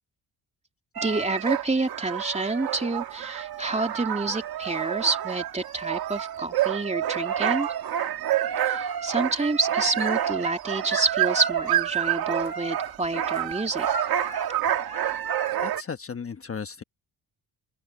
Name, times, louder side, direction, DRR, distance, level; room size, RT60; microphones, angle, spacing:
voice 1, 1.0-7.7 8.6-13.9, right 3 dB, 15° right, 2.8 m, -28 dB
sound 1, 1.0-15.8, right 10 dB, 65° right, 2.1 m, -28 dB
voice 2, 15.6-16.8, left 6 dB, 35° left, 1.3 m, -35 dB
open air
cardioid pair, 85°, 39 cm